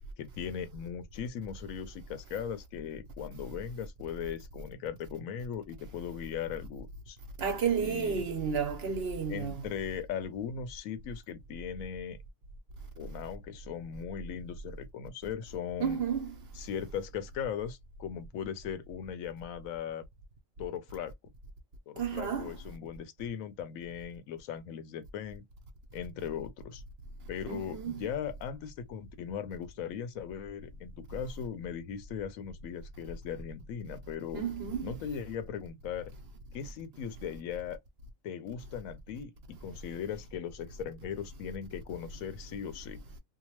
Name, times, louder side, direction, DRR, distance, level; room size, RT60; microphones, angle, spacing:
voice 1, 0.2-7.2 7.8-8.2 9.3-12.2 13.0-16.0 16.5-20.0 20.6-21.1 21.9-25.4 25.9-26.8 27.3-34.4 34.8-36.1 36.5-37.8 38.2-43.0, left 8 dB, 85° left, 1.0 m, -39 dB
voice 2, 7.4-9.6 15.8-16.3 22.0-22.5 27.5-28.1 34.3-34.9, right 6 dB, 55° right, 0.8 m, -32 dB
2.7 x 2.1 x 2.9 m
omnidirectional pair, 1.4 m